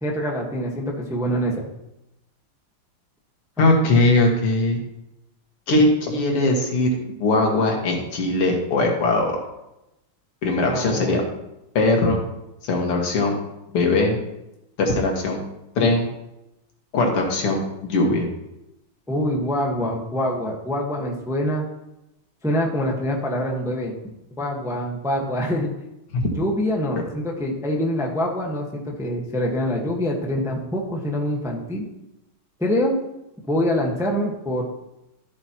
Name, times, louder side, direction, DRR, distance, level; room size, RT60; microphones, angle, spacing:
voice 1, 0.0-1.7 3.6-3.7 10.7-11.2 19.1-21.7 22.4-23.9 24.4-25.7 26.3-31.9 32.6-32.9 33.4-34.8, equal, ahead, 0 dB, 0.9 m, -25 dB
voice 2, 3.6-4.8 5.7-6.9 7.2-9.4 10.4-11.2 11.8-12.2 12.6-13.3 13.7-14.2 14.8-15.4 15.8-16.1 16.9-18.3 26.1-26.2, left 2 dB, 90° left, 1 dB, 2.7 m, -20 dB
13.0 x 8.1 x 3.0 m, 0.89 s
omnidirectional pair, 2.4 m